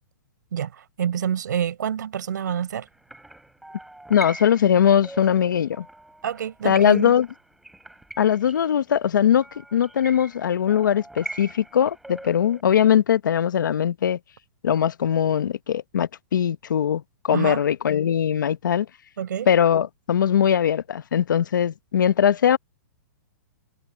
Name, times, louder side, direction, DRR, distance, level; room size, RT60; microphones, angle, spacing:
voice 1, 0.5-2.9 6.2-7.1 17.3-17.6 19.2-19.5, right 9 dB, 65° right, 4.6 m, -27 dB
sound 1, 2.9-12.6, right 1 dB, ahead, 7.0 m, -42 dB
voice 2, 4.1-5.9 6.6-7.3 8.2-9.4 9.7-14.2 14.6-18.9 19.5-22.6, left 9 dB, 70° left, 1.0 m, -20 dB
hypercardioid pair, 175°, 11 cm